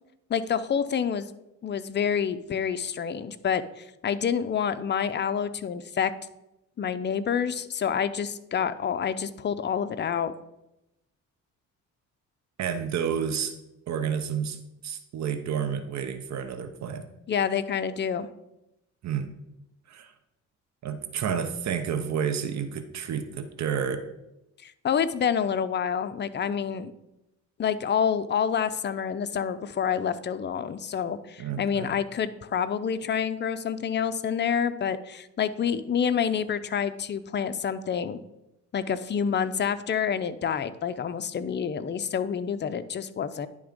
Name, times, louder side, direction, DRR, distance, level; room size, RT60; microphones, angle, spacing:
voice 1, 0.3-1.3 1.6-6.1 6.8-10.3 17.3-18.3 24.6-26.9 27.6-38.2 38.7-43.5, left 7 dB, 35° left, 11 dB, 0.5 m, -28 dB
voice 2, 12.6-13.5 13.9-14.6 14.8-17.1 19.0-19.3 19.9-20.1 20.8-24.1 31.4-31.9, right 7 dB, 65° right, 8 dB, 0.8 m, -30 dB
10.5 x 3.5 x 5.1 m, 0.90 s
cardioid pair, 90°, 30 cm